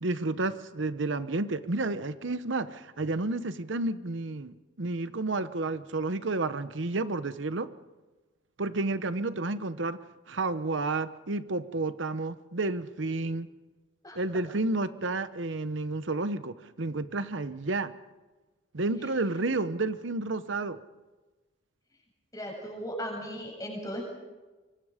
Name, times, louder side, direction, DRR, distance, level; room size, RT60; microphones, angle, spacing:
voice 1, 0.0-7.7 8.6-10.0 10.3-13.5 14.2-17.9 18.7-20.8, right 2 dB, 70° right, 12 dB, 0.9 m, -31 dB
voice 2, 22.3-24.0, equal, 15° left, -1 dB, 7.7 m, -37 dB
25.5 x 24.5 x 5.1 m, 1.2 s
head